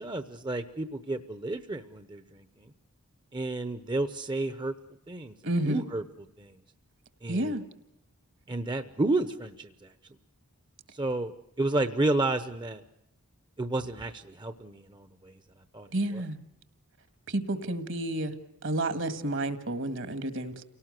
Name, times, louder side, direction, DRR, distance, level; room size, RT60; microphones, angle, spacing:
voice 1, 0.0-2.7 3.3-4.7 5.1-5.3 5.6-6.6 7.2-7.6 8.5-9.9 10.9-12.8 13.6-15.4 15.7-16.2, right 2 dB, 20° right, 10 dB, 0.8 m, -31 dB
voice 2, 5.4-5.8 7.3-7.6 15.9-16.4 17.3-18.3 18.6-20.6, right 1 dB, 60° right, 10 dB, 1.9 m, -30 dB
29.0 x 18.5 x 6.5 m, 0.89 s
head